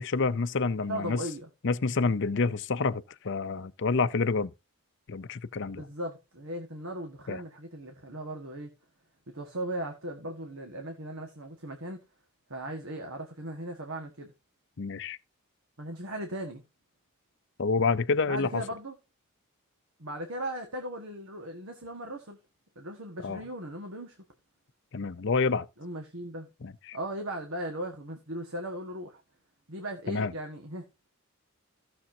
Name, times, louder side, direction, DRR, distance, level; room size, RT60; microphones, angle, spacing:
voice 1, 0.0-1.2 1.6-4.5 5.1-5.8 7.3-7.4 14.8-15.2 17.6-18.6 23.2-23.4 24.9-25.7 26.6-27.0 30.1-30.3, left 4 dB, 55° left, 0.6 m, -28 dB
voice 2, 0.9-1.5 5.7-8.7 9.3-12.0 12.5-14.3 15.8-16.6 18.3-18.9 20.0-22.4 22.7-24.2 25.8-26.5 26.9-29.2 29.7-31.1, right 1 dB, 65° right, 1.6 m, -38 dB
15.5 x 6.9 x 2.8 m
head